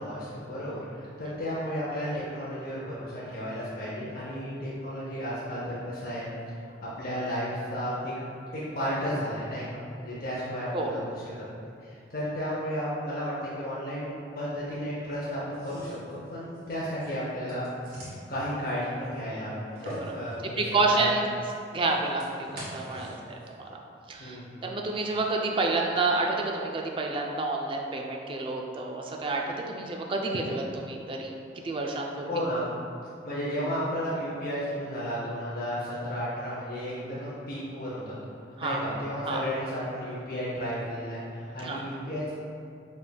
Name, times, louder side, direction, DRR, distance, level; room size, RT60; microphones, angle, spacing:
voice 1, 0.0-6.6 6.8-8.1 8.5-11.0 11.8-17.7 18.3-21.1 22.9-23.1 24.2-24.6 32.3-32.7 33.2-38.3 38.6-42.3, equal, 55° left, -8 dB, 0.6 m, -33 dB
sound 1, 15.5-23.5, equal, 55° right, 1.5 m, -45 dB
voice 2, 20.6-21.3 21.7-23.8 24.1-31.3 31.6-32.4 38.6-38.8 39.3-39.4 41.6-41.8, right 3 dB, 30° right, 0 dB, 0.3 m, -29 dB
5.1 x 3.4 x 2.2 m, 2.4 s
head